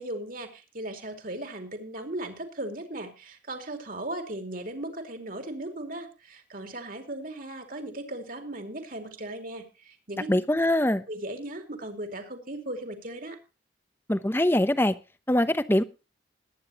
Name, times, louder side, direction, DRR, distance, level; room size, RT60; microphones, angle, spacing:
voice 1, 0.0-10.3 10.9-13.4, right 1 dB, 45° right, 2.7 m, -37 dB
voice 2, 10.3-11.0 14.1-14.9 15.3-15.8, left 1 dB, 10° left, 0.7 m, -23 dB
20.5 x 9.7 x 2.9 m
head